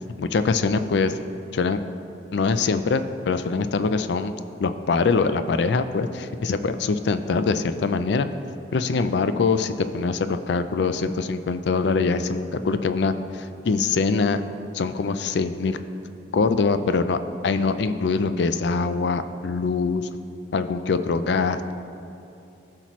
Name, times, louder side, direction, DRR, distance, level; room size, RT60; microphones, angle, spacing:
voice 1, 0.2-1.1 1.5-1.8 2.3-4.3 4.6-8.3 8.7-14.4 14.7-15.8 16.3-17.2 17.4-20.1 20.5-21.7, left 4 dB, 65° left, 11 dB, 0.4 m, -23 dB
14.0 x 5.8 x 3.1 m, 2.7 s
head